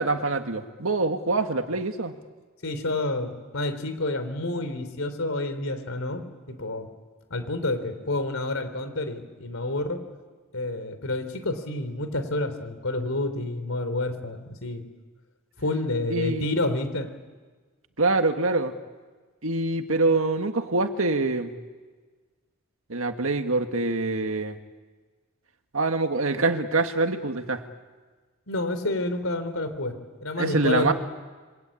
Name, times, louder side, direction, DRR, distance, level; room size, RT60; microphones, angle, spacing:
voice 1, 0.0-2.1 16.1-16.5 18.0-18.7 19.4-21.5 22.9-24.6 25.7-27.6 30.4-30.9, right 3 dB, 80° right, 6 dB, 1.9 m, -25 dB
voice 2, 2.6-6.2 6.5-6.9 7.3-10.0 10.5-14.8 15.6-17.1 28.5-29.9 30.2-30.9, left 2 dB, 80° left, 10 dB, 3.5 m, -29 dB
27.5 x 25.0 x 8.6 m, 1.4 s
head